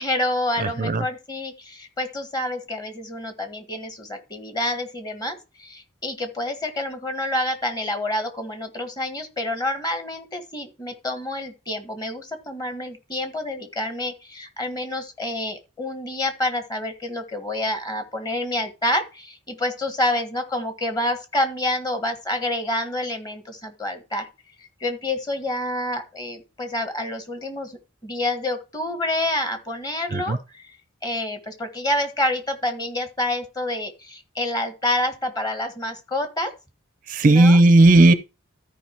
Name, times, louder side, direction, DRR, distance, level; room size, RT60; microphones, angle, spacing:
voice 1, 0.0-24.3 24.8-30.7 31.0-36.5 37.2-37.6, left 1 dB, 20° left, 1.5 m, -28 dB
voice 2, 37.1-38.1, right 2 dB, 40° right, 0.5 m, -14 dB
13.0 x 5.0 x 4.5 m
head